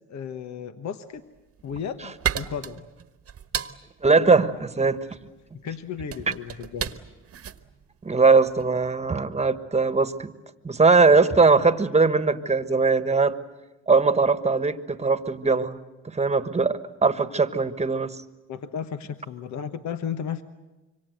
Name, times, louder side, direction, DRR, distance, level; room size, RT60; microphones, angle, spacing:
voice 1, 0.1-1.2 1.6-2.9 5.5-6.9 18.5-20.4, left 7 dB, 65° left, 9 dB, 1.2 m, -34 dB
sound 1, 1.4-8.8, right 9 dB, 50° right, 1.3 m, -34 dB
voice 2, 4.0-5.0 8.0-10.3 10.6-13.3 13.9-15.8 16.0-18.2, right 4 dB, 20° right, 11 dB, 1.4 m, -20 dB
26.5 x 24.0 x 7.9 m, 1.1 s
cardioid pair, 90°, 30 cm